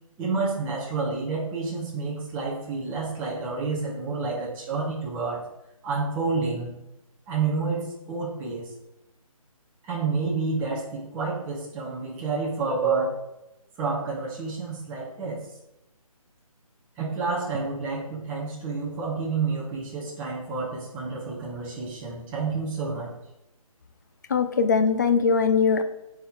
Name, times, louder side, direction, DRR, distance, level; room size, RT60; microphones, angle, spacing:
voice 1, 0.2-5.4 5.8-6.7 7.3-8.7 9.8-13.1 13.8-15.5 17.0-23.1, right 4 dB, 10° right, -5 dB, 0.7 m, -29 dB
voice 2, 24.3-25.8, left 5 dB, 30° left, 9 dB, 0.5 m, -21 dB
7.9 x 4.4 x 3.9 m, 0.91 s
figure-of-eight pair, 160°, 19 cm